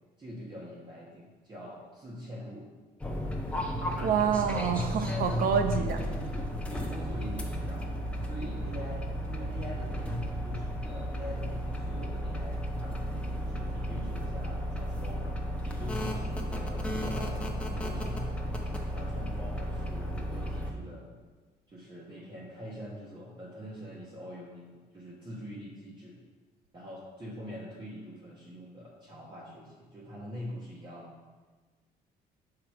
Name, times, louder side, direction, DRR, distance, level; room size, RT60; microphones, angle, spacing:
voice 1, 0.2-2.7 5.7-18.5 18.9-21.1 21.7-26.2 26.7-31.1, equal, 25° right, -6 dB, 1.3 m, -44 dB
sound 1, 3.0-20.7, equal, 5° left, 0.9 m, -33 dB
voice 2, 4.0-6.0, right 7 dB, 60° right, 6 dB, 0.7 m, -27 dB
5.9 x 4.9 x 4.7 m, 1.4 s
cardioid pair, 110°, 17 cm